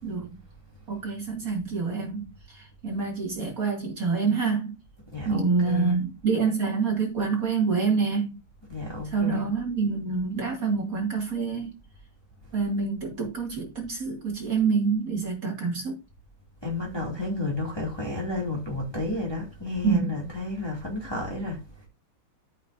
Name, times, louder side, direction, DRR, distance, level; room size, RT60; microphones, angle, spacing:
voice 1, 0.0-0.4 0.9-4.8 5.2-8.4 9.0-11.8 12.5-16.0 19.8-20.3, right 5 dB, 40° right, 2.7 m, -27 dB
voice 2, 5.1-6.0 8.7-9.5 16.6-21.6, left 2 dB, 10° left, 2.5 m, -31 dB
13.0 x 5.8 x 2.7 m
omnidirectional pair, 2.3 m